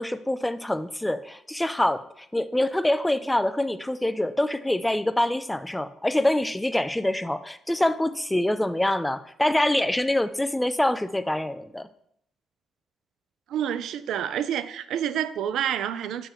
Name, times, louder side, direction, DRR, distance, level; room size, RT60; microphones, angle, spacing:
voice 1, 0.0-11.9, left 1 dB, 5° left, 0.3 m, -25 dB
voice 2, 13.5-16.3, right 9 dB, 75° right, 0.4 m, -28 dB
6.9 x 6.8 x 3.0 m
cardioid pair, 145°, 0 cm